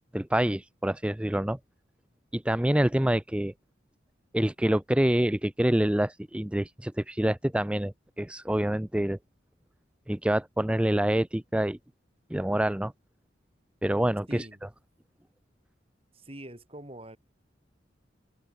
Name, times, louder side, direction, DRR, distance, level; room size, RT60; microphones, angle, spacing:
voice 1, 0.1-1.6 2.3-3.5 4.3-9.2 10.1-11.8 12.3-12.9 13.8-14.5, right 1 dB, 5° right, 0.4 m, -26 dB
voice 2, 14.3-14.6 16.1-17.2, right 1 dB, 30° right, 7.5 m, -44 dB
head